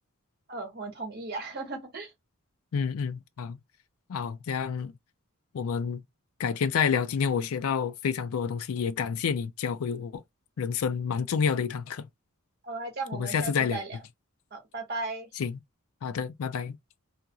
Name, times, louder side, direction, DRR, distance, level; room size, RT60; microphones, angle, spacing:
voice 1, 0.5-2.1 12.6-14.0 14.5-15.3, right 3 dB, 45° right, 1.0 m, -36 dB
voice 2, 2.7-3.6 4.1-4.9 5.5-6.0 6.4-10.2 10.6-12.1 13.1-13.8 15.4-15.6 16.0-16.8, left 6 dB, 75° left, 0.4 m, -29 dB
2.5 x 2.3 x 2.7 m
head